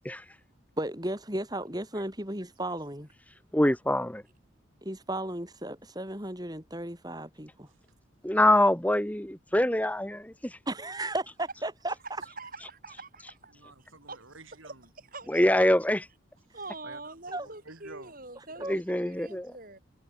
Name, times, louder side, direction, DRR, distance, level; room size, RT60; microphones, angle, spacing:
voice 1, 0.8-3.1 4.8-7.7 10.7-11.9 17.3-17.5 18.6-18.8, right 1 dB, 20° right, 6.8 m, -34 dB
voice 2, 3.5-4.2 8.2-10.6 15.3-16.1 18.7-19.5, left 1 dB, 5° left, 1.3 m, -24 dB
voice 3, 12.2-13.5 14.1-14.2 14.6-15.6 16.5-19.8, right 3 dB, 45° right, 5.6 m, -45 dB
voice 4, 13.5-14.9 16.8-17.1 17.4-18.1, right 3 dB, 80° right, 7.4 m, -50 dB
head